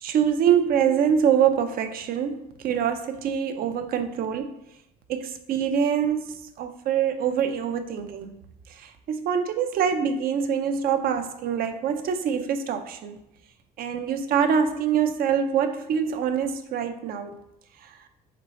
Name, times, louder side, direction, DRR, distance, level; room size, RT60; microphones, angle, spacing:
voice 1, 0.0-4.5 5.1-8.4 8.7-13.2 13.8-17.4 17.8-17.9, right 8 dB, 60° right, 8 dB, 0.5 m, -25 dB
4.3 x 3.1 x 4.0 m, 0.87 s
cardioid pair, 110°, 17 cm